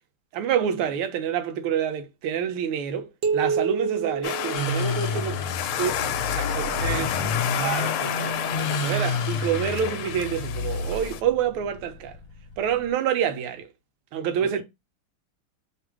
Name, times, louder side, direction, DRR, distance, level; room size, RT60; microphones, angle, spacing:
voice 1, 0.3-5.3 5.8-5.9 6.4-7.1 7.6-12.2 12.6-13.7 14.1-14.6, right 8 dB, 90° right, 1.5 m, -27 dB
sound 1, 3.2-5.6, right 5 dB, 65° right, 1.3 m, -28 dB
sound 2, 4.2-11.2, left 10 dB, 85° left, 1.4 m, -30 dB
sound 3, 4.5-12.9, left 2 dB, 60° left, 1.4 m, -30 dB
voice 2, 5.1-7.3 14.3-14.6, right 1 dB, 10° right, 1.0 m, -43 dB
3.6 x 2.4 x 4.6 m
omnidirectional pair, 2.3 m